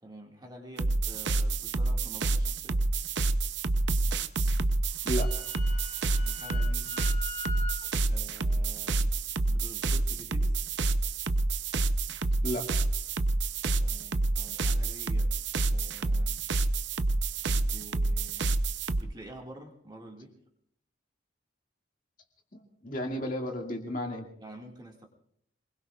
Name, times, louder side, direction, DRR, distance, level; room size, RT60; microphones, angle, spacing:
voice 1, 0.0-2.8 6.2-7.0 8.1-9.1 9.5-10.6 13.8-15.3 15.7-16.4 17.5-18.6 19.0-20.3 24.4-25.1, right 1 dB, 20° right, 0 dB, 2.0 m, -48 dB
sound 1, 0.8-19.0, right 2 dB, 65° right, 0.6 m, -28 dB
Wind instrument woodwind instrument, 4.9-7.8, left 2 dB, 10° left, 2.6 m, -41 dB
voice 2, 5.0-5.4 12.4-12.9 22.5-24.3, equal, 45° left, 1 dB, 2.1 m, -34 dB
26.5 x 21.0 x 2.4 m, 0.68 s
head